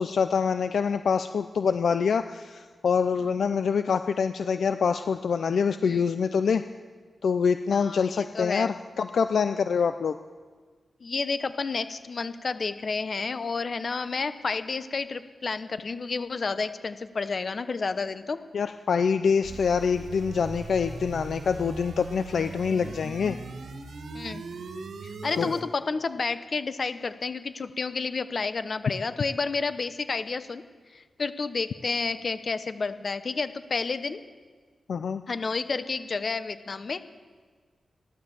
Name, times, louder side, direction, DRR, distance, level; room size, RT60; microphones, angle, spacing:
voice 1, 0.0-6.6 7.2-10.2 18.5-23.4 25.4-25.6 34.9-35.2, left 6 dB, 80° left, 10 dB, 0.5 m, -25 dB
voice 2, 7.7-8.7 11.0-18.4 24.1-24.4 25.0-30.6 30.9-34.2 35.3-37.0, left 4 dB, 55° left, 12 dB, 1.0 m, -30 dB
sound 1, 19.4-25.6, right 3 dB, 85° right, 1.6 m, -39 dB
16.0 x 12.0 x 7.2 m, 1.5 s
cardioid pair, 65°, 0 cm